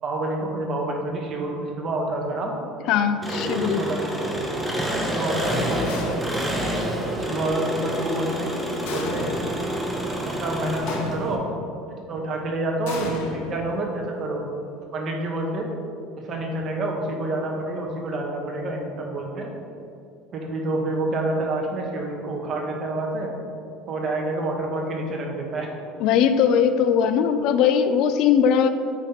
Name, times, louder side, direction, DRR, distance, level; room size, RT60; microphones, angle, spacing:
voice 1, 0.0-2.5 3.3-4.0 5.1-5.9 7.2-9.3 10.2-11.5 12.1-14.4 14.9-15.7 16.2-19.5 20.3-23.3 23.9-25.7, right 2 dB, 35° right, 0 dB, 1.2 m, -28 dB
voice 2, 2.9-3.8 26.0-28.7, left 8 dB, 55° left, 9 dB, 0.4 m, -20 dB
Engine, 3.2-11.3, right 1 dB, 5° right, 0.8 m, -28 dB
sound 1, 5.9-6.6 8.9-9.6 10.9-11.6 12.9-14.1, left 3 dB, 80° left, 0.8 m, -34 dB
9.0 x 4.0 x 4.3 m, 2.6 s
cardioid pair, 150°, 0 cm